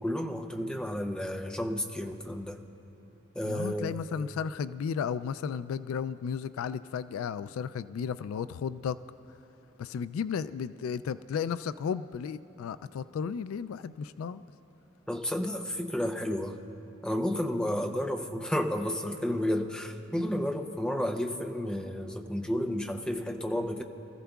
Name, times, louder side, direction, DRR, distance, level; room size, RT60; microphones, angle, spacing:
voice 1, 0.0-2.6 3.3-3.9 15.1-16.6 17.0-23.8, left 1 dB, 5° left, 5 dB, 0.5 m, -31 dB
voice 2, 3.4-9.0 9.8-14.4, left 7 dB, 85° left, 14 dB, 0.3 m, -34 dB
24.0 x 14.5 x 2.3 m, 3.0 s
head